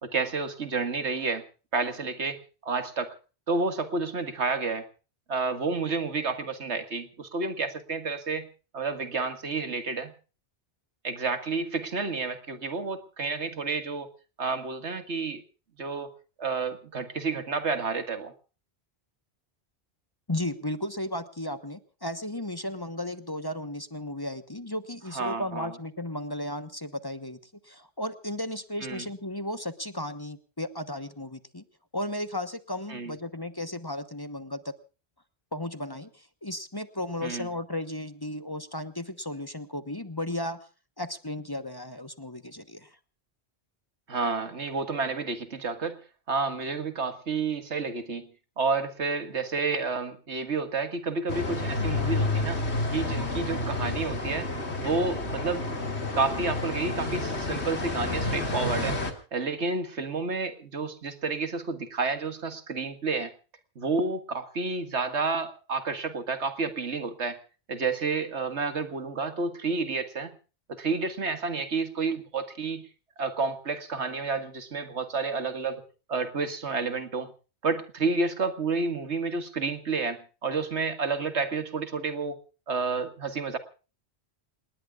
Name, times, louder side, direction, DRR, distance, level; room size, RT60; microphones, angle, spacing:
voice 1, 0.0-1.4 1.7-3.2 3.5-4.9 5.3-8.5 8.7-10.1 11.0-14.1 14.4-15.4 15.8-16.1 16.4-18.3 25.1-25.7 28.8-29.1 32.9-33.1 37.2-37.5 44.1-46.0 46.3-48.3 48.6-52.6 52.9-54.5 54.8-55.8 56.1-59.0 59.3-63.3 63.8-67.4 67.7-70.4 70.7-72.8 73.2-75.8 76.1-77.3 77.6-82.4 82.7-83.6, right 4 dB, 85° right, 9 dB, 2.0 m, -30 dB
voice 2, 20.3-27.4 27.6-31.6 31.9-34.7 35.5-40.7 41.0-43.0, left 1 dB, 20° left, 11 dB, 1.1 m, -35 dB
sound 1, 51.3-59.1, left 2 dB, 75° left, 2.6 m, -30 dB
28.5 x 19.5 x 2.4 m, 0.35 s
omnidirectional pair, 1.1 m